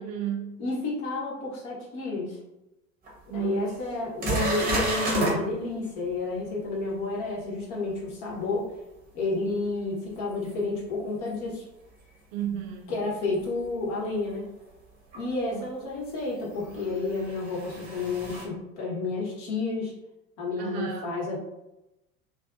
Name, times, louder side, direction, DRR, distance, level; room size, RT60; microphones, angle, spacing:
voice 1, 0.0-0.5 3.3-3.6 12.3-13.0 15.5-15.6 20.6-21.1, right 10 dB, 45° right, 0 dB, 0.6 m, -33 dB
voice 2, 0.6-2.4 3.3-8.7 9.1-11.7 12.9-14.5 15.1-20.0 20.4-21.4, left 3 dB, 40° left, -3 dB, 1.0 m, -30 dB
sound 1, 3.1-3.2 3.7-3.8 4.2-5.4 10.5-10.6 13.3-13.4 15.1-15.2 16.6-18.4, right 2 dB, 20° right, 0.9 m, -30 dB
2.5 x 2.4 x 2.4 m, 0.92 s
figure-of-eight pair, 80°, 42 cm